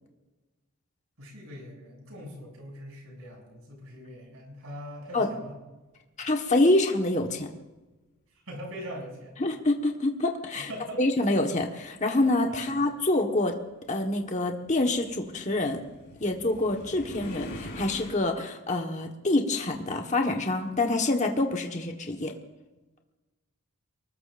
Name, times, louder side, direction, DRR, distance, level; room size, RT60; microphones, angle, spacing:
voice 1, 1.2-5.6 8.4-9.4 10.6-11.0 12.5-12.7, equal, 70° right, 0 dB, 7.2 m, -42 dB
voice 2, 6.2-7.5 9.4-10.7 11.0-13.5 13.9-15.8 16.2-22.3, left 2 dB, 35° left, 2 dB, 1.4 m, -26 dB
sound 1, 10.9-11.0 12.0-18.1, equal, 50° left, 4.3 m, -44 dB
24.0 x 20.0 x 2.6 m, 1.1 s
head